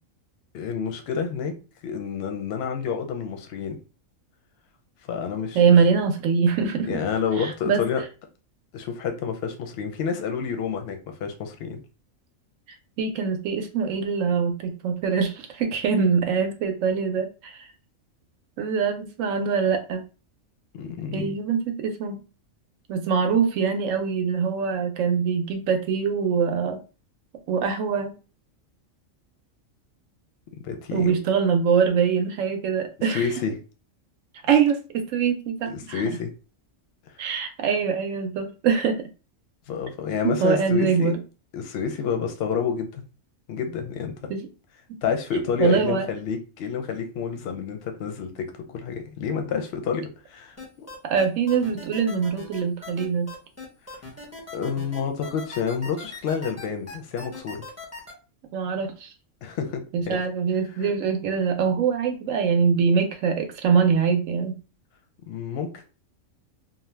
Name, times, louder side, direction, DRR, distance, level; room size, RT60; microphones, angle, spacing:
voice 1, 0.5-1.6 1.8-3.8 5.1-5.6 6.9-8.0 8.7-11.8 20.7-21.3 30.6-31.2 33.1-33.5 35.7-36.3 39.7-41.1 41.5-43.0 43.5-44.3 45.0-50.9 54.5-57.6 59.4-60.2 60.8-60.9 65.3-65.7, left 6 dB, 60° left, 0.7 m, -29 dB
voice 2, 5.5-7.0 7.4-7.8 13.0-17.7 18.6-20.0 21.1-22.2 22.9-26.8 27.5-28.1 30.9-33.3 34.4-36.1 37.2-39.1 40.2-41.2 44.3-44.5 45.6-46.1 51.0-53.3 58.5-59.1 59.9-64.5, right 6 dB, 75° right, 0.9 m, -23 dB
sound 1, 50.6-58.1, left 3 dB, 15° left, 0.7 m, -39 dB
2.7 x 2.1 x 3.2 m
omnidirectional pair, 1.4 m